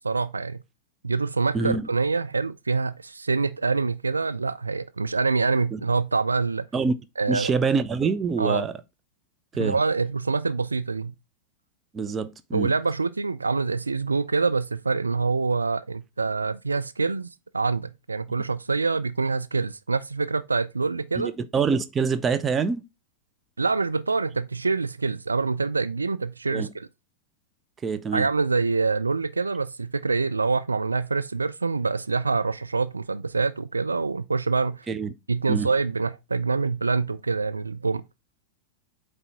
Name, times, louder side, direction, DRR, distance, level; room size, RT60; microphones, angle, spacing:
voice 1, 0.0-0.6 1.0-6.7 7.2-7.5 8.4-8.7 9.6-11.1 12.5-17.3 17.5-21.3 23.6-26.9 28.1-34.8 35.3-38.0, right 4 dB, 80° right, 0.4 m, -25 dB
voice 2, 1.5-1.9 5.7-5.8 6.7-6.9 7.3-8.7 9.6-9.8 11.9-12.7 21.2-22.8 26.5-26.7 27.8-28.3 34.9-35.1 35.5-35.7, right 5 dB, 20° right, 0.6 m, -25 dB
8.3 x 3.4 x 4.3 m
figure-of-eight pair, 90°, 0 cm